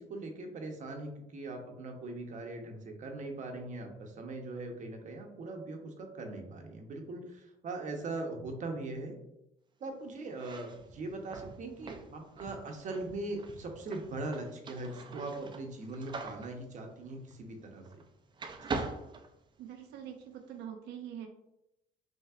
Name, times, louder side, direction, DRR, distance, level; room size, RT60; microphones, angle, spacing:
voice 1, 0.0-9.2 9.8-17.8, right 2 dB, 45° right, 3 dB, 0.9 m, -40 dB
sound 1, 10.3-18.1 18.4-20.0, right 3 dB, 25° right, 0.5 m, -43 dB
voice 2, 19.6-21.3, right 9 dB, 80° right, 4 dB, 0.5 m, -44 dB
5.5 x 2.9 x 2.4 m, 0.85 s
cardioid pair, 110°, 17 cm